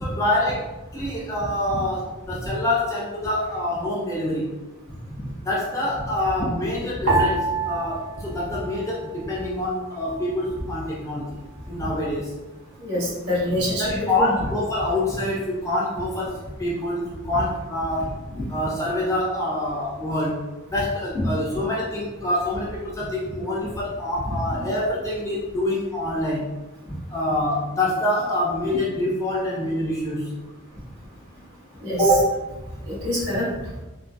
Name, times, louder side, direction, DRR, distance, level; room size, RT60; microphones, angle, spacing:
voice 1, 0.0-4.5 5.4-11.3 11.7-12.3 13.8-18.2 18.5-26.5 27.1-30.3 31.9-32.1, left 1 dB, 15° left, -5 dB, 0.4 m, -26 dB
sound 1, 7.1-9.6 9.8-10.8 11.4-11.8, right 3 dB, 70° right, 0.7 m, -27 dB
voice 2, 12.8-14.3 31.8-32.2 32.9-33.4, equal, 55° right, -8 dB, 1.4 m, -23 dB
3.8 x 2.0 x 2.3 m, 1.1 s
head